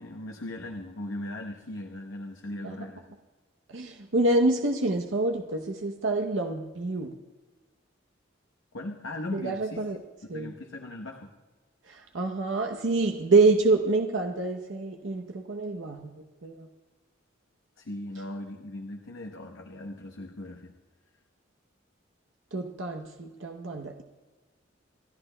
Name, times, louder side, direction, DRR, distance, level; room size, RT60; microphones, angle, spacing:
voice 1, 0.0-3.0 8.7-10.0 10.3-11.3 17.8-20.7, left 1 dB, 80° left, 2 dB, 0.8 m, -38 dB
voice 2, 3.7-7.1 9.3-10.0 10.3-10.5 11.9-16.1 16.4-16.7 22.5-24.0, right 3 dB, 75° right, 3 dB, 0.8 m, -27 dB
28.0 x 12.0 x 2.2 m, 1.3 s
head